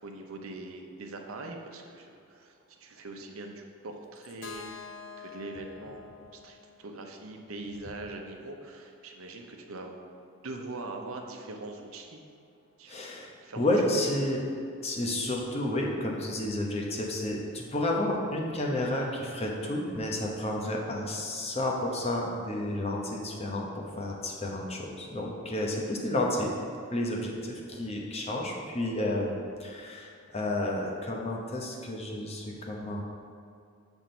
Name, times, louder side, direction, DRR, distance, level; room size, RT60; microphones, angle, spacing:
voice 1, 0.0-4.9 5.2-10.0 10.4-12.2 12.8-13.1 13.4-13.6, right 2 dB, 80° right, 3 dB, 0.8 m, -42 dB
Keyboard (musical), 4.4-8.3, left 6 dB, 60° left, 0.5 m, -48 dB
voice 2, 12.9-13.3 13.6-14.4 14.8-26.5 26.9-33.0, left 1 dB, 30° left, -1 dB, 0.9 m, -31 dB
8.0 x 3.6 x 6.0 m, 2.3 s
head